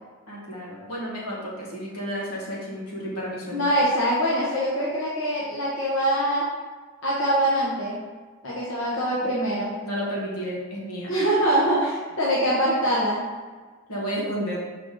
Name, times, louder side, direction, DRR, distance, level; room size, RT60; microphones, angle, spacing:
voice 1, 0.3-3.6 9.8-11.1 13.9-14.6, equal, 85° left, -5 dB, 2.0 m, -31 dB
voice 2, 3.5-6.4 7.0-7.9 8.4-9.7 11.1-13.2, right 1 dB, 60° left, -7 dB, 1.4 m, -23 dB
6.6 x 4.8 x 3.9 m, 1.4 s
head